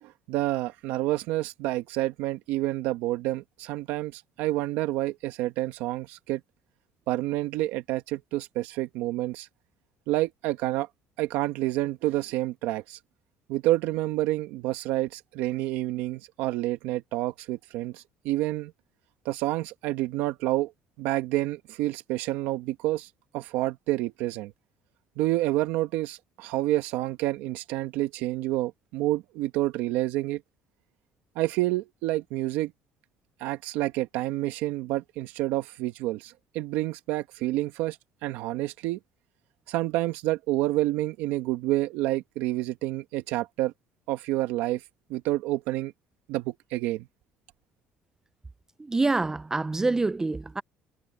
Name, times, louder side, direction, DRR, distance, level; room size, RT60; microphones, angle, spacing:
voice 1, 0.0-6.4 7.1-9.5 10.1-10.9 11.2-13.0 13.5-18.7 19.2-20.7 21.0-24.5 25.2-30.4 31.3-32.7 33.4-39.0 39.7-43.7 44.1-44.8 45.1-45.9 46.3-47.1, right 16 dB, 85° right, 1.4 m, -28 dB
voice 2, 48.8-50.6, right 3 dB, 15° right, 0.5 m, -26 dB
cardioid pair, 105°, 3 cm